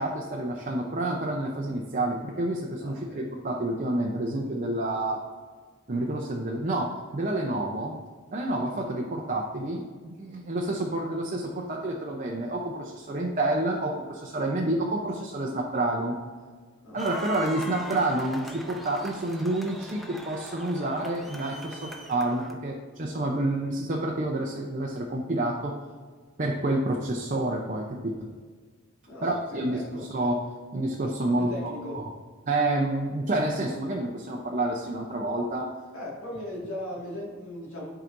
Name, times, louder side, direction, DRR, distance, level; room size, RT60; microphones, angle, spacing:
voice 1, 0.0-5.2 5.9-8.0 8.3-16.2 16.9-25.7 26.4-28.3 29.2-30.4 30.7-32.0 32.5-35.7, right 1 dB, 40° right, -1 dB, 0.6 m, -29 dB
voice 2, 2.8-3.3 8.7-8.9 16.8-17.0 29.1-30.0 31.4-32.0 35.9-37.9, left 1 dB, 80° left, -3 dB, 2.1 m, -38 dB
sound 1, 17.0-22.5, left 1 dB, ahead, 0.5 m, -41 dB
10.5 x 4.9 x 2.6 m, 1.5 s
head